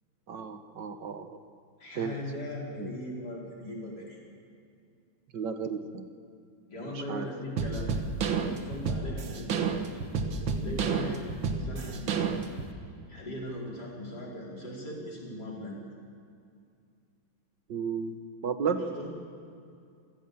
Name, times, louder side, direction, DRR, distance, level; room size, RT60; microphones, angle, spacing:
voice 1, 0.3-1.4 1.9-2.1 2.8-2.9 5.3-6.1 6.9-7.3 17.7-18.8, right 6 dB, 65° right, 8 dB, 1.8 m, -33 dB
voice 2, 1.8-4.2 6.7-7.9 8.3-11.2 11.5-12.2 13.1-15.7 18.7-19.1, left 1 dB, 55° left, -4 dB, 5.6 m, -39 dB
sound 1, 7.6-12.7, right 5 dB, 85° right, 2.2 m, -30 dB
28.0 x 17.0 x 7.0 m, 2.4 s
omnidirectional pair, 2.1 m